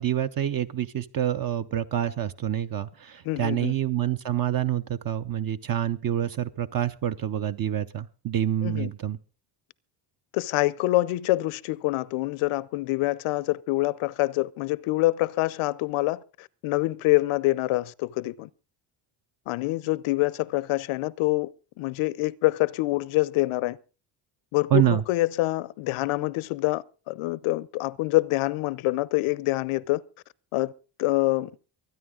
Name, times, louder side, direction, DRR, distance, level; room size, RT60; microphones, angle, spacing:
voice 1, 0.0-9.2 24.7-25.0, right 11 dB, 45° right, 0.7 m, -27 dB
voice 2, 3.2-3.7 8.6-8.9 10.3-18.5 19.5-21.5 21.8-23.8 24.5-30.0 30.5-30.7 31.0-31.5, left 19 dB, 85° left, 0.7 m, -26 dB
24.0 x 9.7 x 3.7 m
cardioid pair, 110°, 48 cm